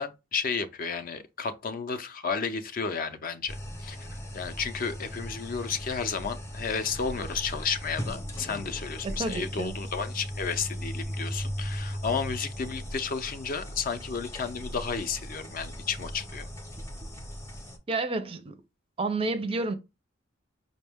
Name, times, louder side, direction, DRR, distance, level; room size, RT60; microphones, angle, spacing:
voice 1, 0.0-16.5, left 5 dB, 50° left, 0.5 m, -32 dB
sound 1, 3.5-17.8, equal, 15° left, 0.7 m, -38 dB
voice 2, 9.0-9.7 17.9-18.6 19.0-19.7, right 3 dB, 30° right, 0.4 m, -30 dB
5.0 x 2.1 x 3.4 m
head